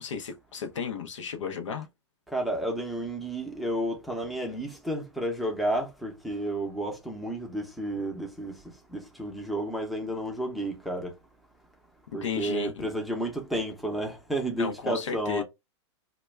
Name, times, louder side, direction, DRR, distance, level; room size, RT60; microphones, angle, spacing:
voice 1, 0.0-1.9 12.2-12.9 14.6-15.4, left 6 dB, 90° left, 0.6 m, -33 dB
voice 2, 2.3-8.5 8.9-11.1 12.1-15.4, right 1 dB, ahead, 0.6 m, -31 dB
2.2 x 2.1 x 3.2 m
hypercardioid pair, 125°, 15 cm